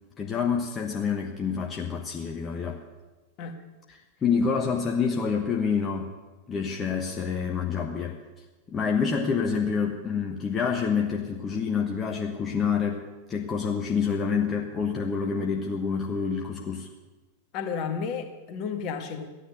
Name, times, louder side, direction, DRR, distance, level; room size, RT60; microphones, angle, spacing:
voice 1, 0.2-2.8 3.9-6.1 6.5-8.1 8.7-13.0 13.3-16.9, left 6 dB, 20° left, 1 dB, 1.2 m, -27 dB
voice 2, 17.5-19.3, left 6 dB, 40° left, 6 dB, 1.7 m, -32 dB
14.5 x 9.9 x 6.7 m, 1.2 s
figure-of-eight pair, 90°, 0 cm